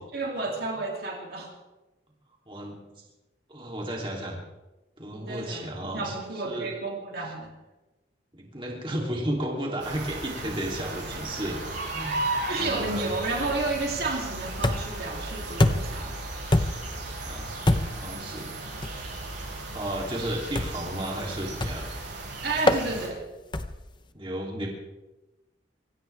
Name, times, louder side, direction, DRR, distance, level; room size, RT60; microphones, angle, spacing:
voice 1, 0.1-1.5 5.1-7.5 12.5-16.2 22.4-23.2, right 3 dB, 55° right, 0 dB, 2.8 m, -31 dB
voice 2, 2.5-3.0 3.5-4.4 5.0-6.1 6.4-6.7 7.2-7.3 8.3-11.6 11.9-13.1 17.2-18.5 19.7-21.8 24.1-24.7, right 1 dB, 25° right, -1 dB, 3.0 m, -33 dB
sound 1, 9.8-23.1, right 2 dB, 75° right, 6.3 m, -35 dB
sound 2, 14.6-15.1 15.6-16.0 16.5-17.0 17.7-18.1 18.8-19.0 20.5-20.9 21.6-22.0 22.7-22.9 23.5-23.9, left 1 dB, 25° left, 0.8 m, -24 dB
24.5 x 16.0 x 3.4 m, 1.1 s
head